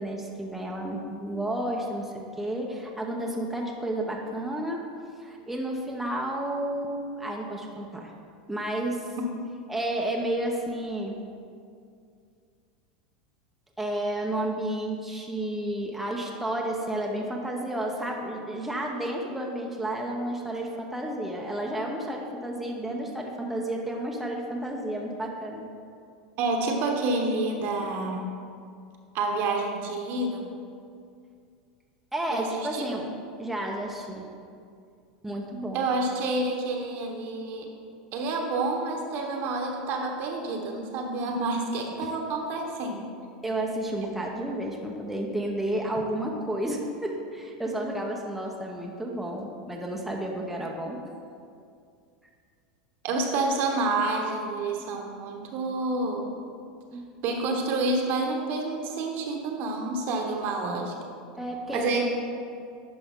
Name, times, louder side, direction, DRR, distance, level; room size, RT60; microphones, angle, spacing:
voice 1, 0.0-4.8 5.2-8.1 8.5-9.1 9.7-11.2 13.8-25.7 32.1-33.1 33.4-34.3 35.2-35.8 42.0-42.1 43.4-51.0 56.9-57.1 61.4-62.1, right 1 dB, 5° right, -1 dB, 0.9 m, -31 dB
voice 2, 26.4-28.3 29.1-30.5 32.3-33.0 35.7-37.7 38.1-43.1 53.0-56.3 57.2-60.9 61.7-62.1, right 2 dB, 55° right, 1 dB, 1.3 m, -28 dB
11.0 x 5.2 x 3.7 m, 2.3 s
supercardioid pair, 110°, 4 cm